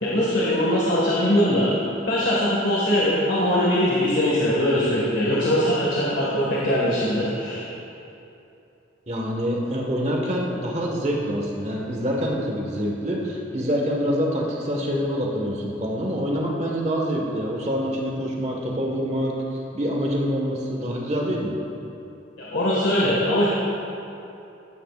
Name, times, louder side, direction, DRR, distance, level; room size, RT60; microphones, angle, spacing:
voice 1, 0.0-1.7 2.1-7.6 22.4-23.5, equal, 70° left, -7 dB, 1.8 m, -21 dB
voice 2, 9.1-19.3 19.7-21.6, equal, 35° right, -1 dB, 1.6 m, -26 dB
15.5 x 12.5 x 2.5 m, 2.8 s
head